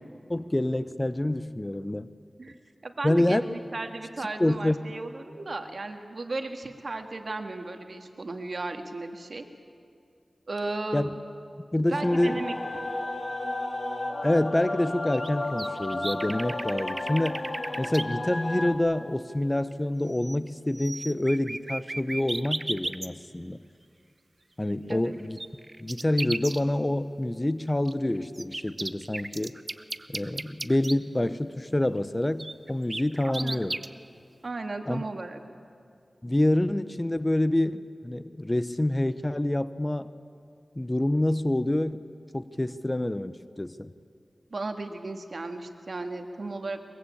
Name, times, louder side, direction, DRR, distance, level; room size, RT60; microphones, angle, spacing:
voice 1, 0.3-2.1 3.0-3.5 4.4-4.8 10.9-11.1 11.7-12.4 14.2-17.4 17.8-23.6 24.6-25.4 25.8-29.6 30.1-33.8 34.9-35.0 36.2-40.1 40.8-42.1 42.3-43.9, left 1 dB, 25° left, 13 dB, 0.8 m, -27 dB
voice 2, 2.8-9.4 10.5-11.2 11.9-12.6 24.9-25.1 33.2-33.6 34.4-35.4 44.5-46.8, right 2 dB, 60° right, 5 dB, 1.9 m, -35 dB
sound 1, 11.9-18.7, left 2 dB, 55° left, 3.0 m, -33 dB
sound 2, 15.1-18.0 19.7-19.8 20.1-20.5 20.7-23.1 24.9-26.6 27.8-30.9 32.4-33.9, right 2 dB, 40° right, 0.8 m, -35 dB
22.0 x 22.0 x 8.6 m, 2.3 s
wide cardioid pair, 60°, 0 cm